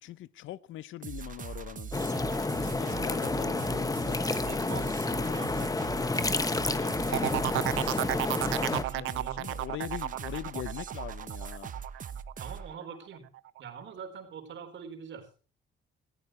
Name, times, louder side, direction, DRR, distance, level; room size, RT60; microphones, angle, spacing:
voice 1, 0.0-1.9 2.6-4.2 8.6-11.7, left 14 dB, 80° left, 0.6 m, -42 dB
sound 1, 1.0-12.7, right 7 dB, 40° right, 0.9 m, -41 dB
sound 2, 1.9-8.8, left 3 dB, 20° left, 1.0 m, -30 dB
voice 2, 2.9-3.5 4.2-5.0 5.3-5.8 6.2-7.6 8.6-9.5 12.4-15.3, right 6 dB, 70° right, 4.0 m, -45 dB
sound 3, 7.1-12.8 13.1-13.6, right 16 dB, 85° right, 0.6 m, -32 dB
19.5 x 14.5 x 3.1 m
cardioid pair, 90°, 20 cm